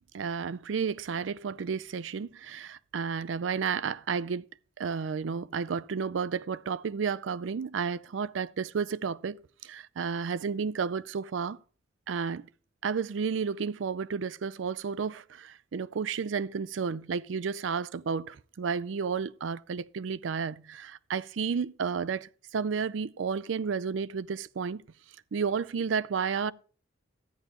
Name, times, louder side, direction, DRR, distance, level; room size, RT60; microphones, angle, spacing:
voice 1, 0.1-4.4 4.8-11.6 12.1-12.5 12.8-24.8 25.3-26.5, right 6 dB, 80° right, 0.4 m, -32 dB
13.5 x 10.0 x 3.0 m
head